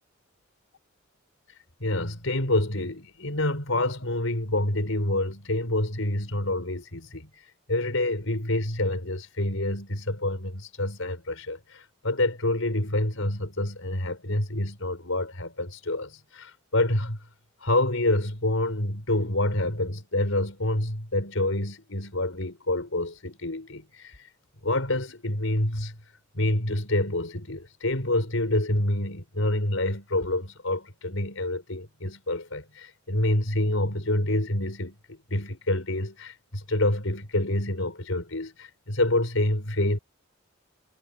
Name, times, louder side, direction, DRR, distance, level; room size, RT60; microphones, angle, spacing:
voice 1, 1.8-7.3 7.7-17.2 17.6-24.2 24.6-25.9 26.3-34.9 35.3-40.0, left 1 dB, 85° left, 4.9 m, -27 dB
head